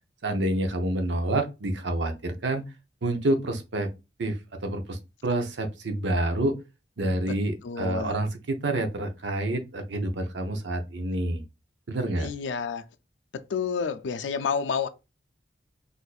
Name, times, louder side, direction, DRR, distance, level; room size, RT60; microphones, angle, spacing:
voice 1, 0.2-2.6 3.0-3.9 4.2-6.6 7.0-11.4 11.9-12.3, right 1 dB, 75° right, 0.7 m, -28 dB
voice 2, 7.6-8.1 12.2-12.8 13.5-14.9, left 6 dB, 80° left, 0.4 m, -29 dB
4.1 x 2.6 x 2.3 m
head